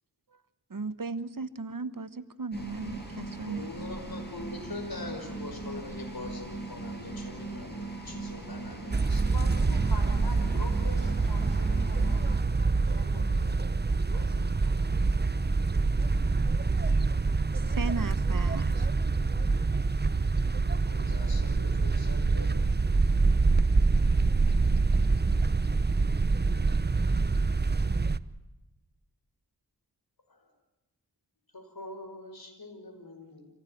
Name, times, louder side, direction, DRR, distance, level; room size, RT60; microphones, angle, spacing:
voice 1, 0.7-3.7 17.5-18.9, right 4 dB, 55° right, 14 dB, 1.2 m, -36 dB
sound 1, 2.5-12.4, right 2 dB, 25° left, 6.5 m, -39 dB
voice 2, 3.4-9.3 20.4-22.6 30.3-30.4 31.5-33.5, left 2 dB, 60° left, 4 dB, 5.7 m, -43 dB
sound 2, 8.9-28.2, right 3 dB, 25° right, 0.7 m, -26 dB
voice 3, 9.3-12.3 12.8-13.6 14.1-15.0, left 2 dB, 75° left, 4 dB, 5.1 m, -44 dB
25.5 x 16.5 x 9.2 m, 1.1 s
cardioid pair, 40°, 40 cm